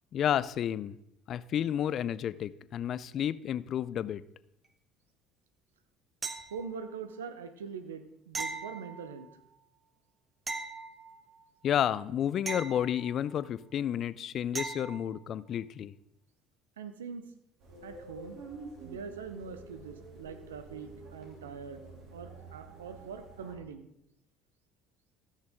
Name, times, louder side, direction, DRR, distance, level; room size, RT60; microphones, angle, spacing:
voice 1, 0.1-1.0 1.3-4.2 11.6-15.9, left 10 dB, 50° left, 17 dB, 0.4 m, -31 dB
sound 1, 6.2-7.0 8.3-9.4 10.5-11.5 12.5-13.5 14.6-15.2 17.9-18.0, right 4 dB, 30° right, 1.0 m, -40 dB
voice 2, 6.5-9.4 16.8-17.3 17.8-18.4 18.8-21.8 22.1-23.9, right 6 dB, 90° right, 10 dB, 0.8 m, -43 dB
sound 2, 17.6-23.5, right 3 dB, 65° right, 2.8 m, -48 dB
14.0 x 6.5 x 3.7 m, 0.81 s
hypercardioid pair, 70°, 0 cm